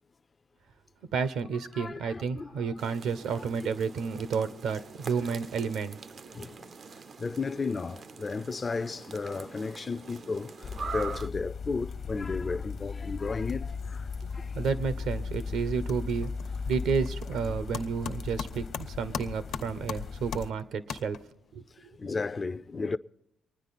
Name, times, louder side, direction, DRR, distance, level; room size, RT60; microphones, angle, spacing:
voice 1, 1.1-6.0 14.5-16.3 16.6-21.2 21.5-21.6, right 5 dB, 80° right, 0.9 m, -31 dB
voice 2, 1.7-2.8 6.3-6.7 7.2-14.6 21.8-23.0, left 4 dB, 30° left, 0.4 m, -34 dB
sound 1, 2.8-11.3, right 5 dB, 45° right, 0.5 m, -44 dB
sound 2, 10.6-20.5, left 5 dB, 50° left, 0.8 m, -37 dB
sound 3, 15.0-15.4 15.6-21.5, left 7 dB, 75° left, 1.0 m, -41 dB
24.5 x 9.9 x 4.1 m
cardioid pair, 90°, 0 cm